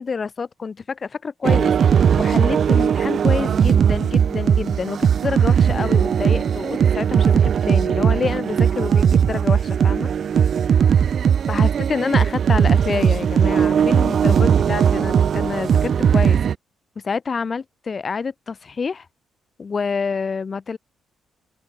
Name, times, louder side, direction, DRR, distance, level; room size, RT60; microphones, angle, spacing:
voice 1, 0.0-10.1 11.5-16.4 17.0-19.1 19.6-20.8, left 5 dB, 35° left, 2.7 m, -27 dB
sound 1, 1.4-16.5, right 8 dB, 55° right, 2.2 m, -18 dB
open air
cardioid pair, 90°, 0 cm